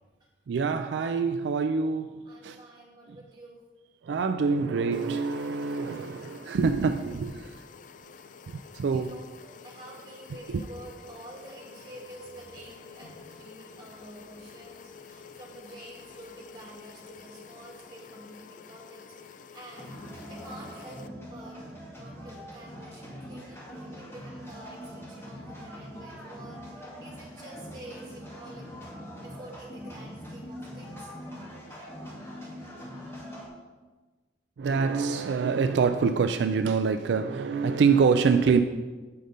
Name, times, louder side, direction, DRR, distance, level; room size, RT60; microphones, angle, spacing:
voice 1, 0.5-2.6 4.0-7.6 8.5-9.2 10.5-10.6 34.6-38.6, right 5 dB, 75° right, 8 dB, 0.3 m, -25 dB
voice 2, 2.3-3.6 8.3-8.5 8.9-19.2 19.5-20.0 20.3-21.6 21.9-28.7 29.2-31.1, right 1 dB, 25° right, -3 dB, 2.2 m, -48 dB
sound 1, 4.9-21.1, left 6 dB, 45° left, 0.4 m, -49 dB
sound 2, 19.7-33.5, equal, 15° left, 2.0 m, -43 dB
7.9 x 5.4 x 5.1 m, 1.3 s
head